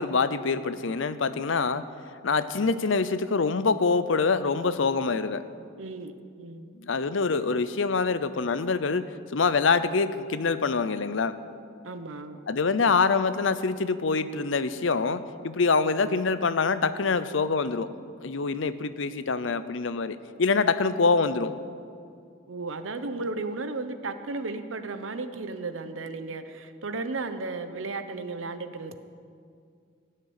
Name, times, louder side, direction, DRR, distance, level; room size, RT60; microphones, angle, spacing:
voice 1, 0.0-1.8 2.2-5.4 6.8-11.4 12.5-17.9 18.2-21.5, left 4 dB, 70° left, 13 dB, 0.7 m, -25 dB
voice 2, 5.8-6.7 11.8-12.4 22.5-29.0, right 3 dB, 80° right, 9 dB, 1.0 m, -34 dB
17.0 x 6.7 x 9.6 m, 2.3 s
head